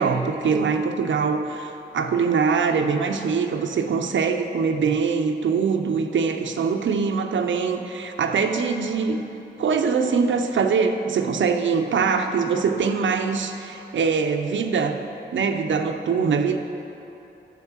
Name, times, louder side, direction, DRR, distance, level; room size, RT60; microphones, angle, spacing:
voice 1, 0.0-9.2 9.6-15.0 15.3-16.6, right 5 dB, 85° right, 6 dB, 0.6 m, -23 dB
8.3 x 6.5 x 7.3 m, 3.0 s
cardioid pair, 45°, 19 cm